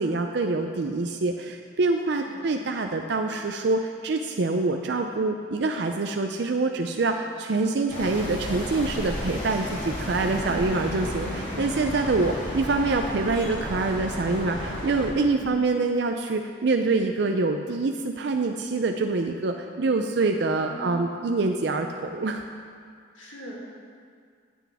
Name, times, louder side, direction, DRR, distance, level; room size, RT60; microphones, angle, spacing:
voice 1, 0.0-22.4, right 3 dB, 60° right, 4 dB, 0.5 m, -25 dB
voice 2, 2.0-2.6 10.4-10.7 15.4-15.5 20.6-21.4 23.1-23.5, right 1 dB, 90° left, -5 dB, 2.6 m, -42 dB
sound 1, 7.9-15.1, equal, 40° left, 2.7 m, -33 dB
sound 2, 8.1-14.7, equal, 70° left, 2.3 m, -43 dB
15.0 x 8.2 x 3.5 m, 2.1 s
head